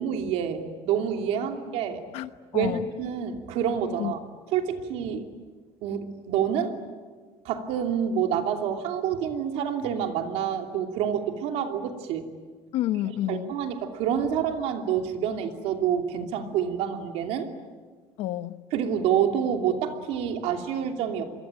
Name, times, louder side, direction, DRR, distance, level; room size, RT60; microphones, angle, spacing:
voice 1, 0.0-2.0 2.5-4.2 4.5-5.3 5.8-6.8 7.4-12.3 13.3-17.5 18.7-21.2, right 8 dB, 75° right, 5 dB, 2.8 m, -27 dB
voice 2, 2.1-2.8 4.0-4.1 12.7-13.5 18.2-18.6, left 13 dB, 70° left, 12 dB, 1.1 m, -29 dB
27.5 x 22.5 x 9.0 m, 1.5 s
cardioid pair, 175°, 11 cm